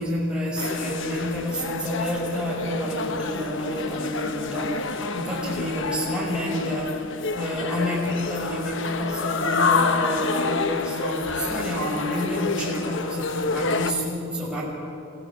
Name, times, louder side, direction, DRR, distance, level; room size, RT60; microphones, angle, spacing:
voice 1, 0.0-14.6, equal, 5° right, -6 dB, 5.8 m, -29 dB
sound 1, 0.6-13.9, left 4 dB, 60° left, 1.1 m, -28 dB
29.0 x 16.5 x 7.4 m, 2.9 s
head